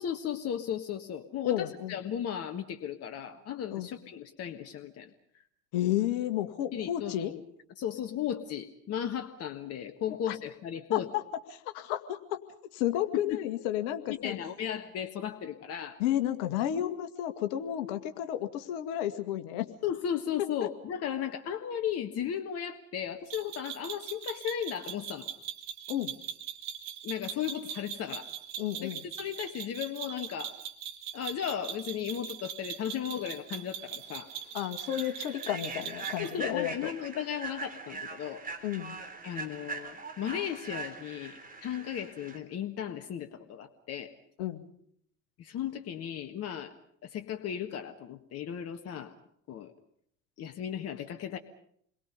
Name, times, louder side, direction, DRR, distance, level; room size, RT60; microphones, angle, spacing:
voice 1, 0.0-5.1 6.7-7.3 7.8-11.1 13.1-13.4 14.1-16.0 19.8-25.3 27.0-28.3 28.8-30.5 31.1-34.3 36.2-38.4 39.2-44.1 45.4-46.7 47.0-49.1 49.5-49.7 50.4-51.4, left 9 dB, 35° left, 6 dB, 1.7 m, -35 dB
voice 2, 1.4-2.0 3.7-3.9 5.7-7.3 10.3-10.4 10.9-11.2 11.6-12.4 12.7-14.4 16.0-19.7 20.6-20.7 25.9-26.1 28.6-29.0 34.5-36.9 38.6-39.0 44.4-44.6, left 12 dB, 50° left, 8 dB, 2.2 m, -32 dB
sound 1, 23.3-36.4, right 9 dB, 50° right, 2.2 m, -41 dB
Human voice / Train, 33.5-33.7 34.1-34.3 34.8-42.4, right 4 dB, 20° right, 3.5 m, -42 dB
28.5 x 22.5 x 5.4 m, 0.66 s
figure-of-eight pair, 75°, 43 cm